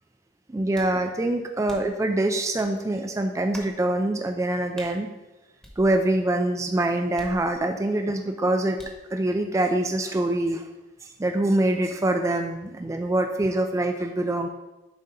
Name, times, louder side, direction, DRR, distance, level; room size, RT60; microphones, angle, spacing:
voice 1, 0.5-5.1 5.8-8.8 9.1-10.7 11.0-14.5, right 1 dB, 15° right, 5 dB, 0.3 m, -24 dB
sound 1, 0.7-1.0 1.7-2.0 2.6-2.7 3.5-3.8 4.8-4.9 5.6-6.3 7.2-7.8 8.8-9.1, equal, 5° left, 1.0 m, -46 dB
7.2 x 2.8 x 5.1 m, 1.0 s
head